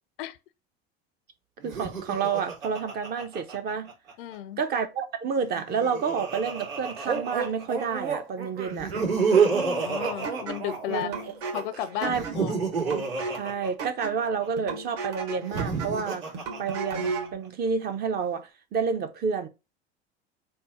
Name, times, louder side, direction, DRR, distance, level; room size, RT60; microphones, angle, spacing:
voice 1, 1.6-3.9 4.6-8.9 10.9-11.2 12.0-12.2 12.8-13.1 13.3-16.2 16.6-19.5, right 6 dB, 30° right, 0.5 m, -29 dB
Laughter, 1.6-4.1 5.4-7.8 8.7-11.2 12.0-14.5 15.3-17.3, right 5 dB, 70° right, 2.0 m, -29 dB
voice 2, 4.2-4.6 9.4-11.1 11.5-12.6, left 11 dB, 60° left, 0.4 m, -34 dB
sound 1, 7.1-11.9, right 5 dB, 85° right, 0.8 m, -34 dB
sound 2, 10.2-17.4, right 4 dB, 55° right, 1.3 m, -36 dB
3.5 x 2.1 x 4.0 m
hypercardioid pair, 80°, 31 cm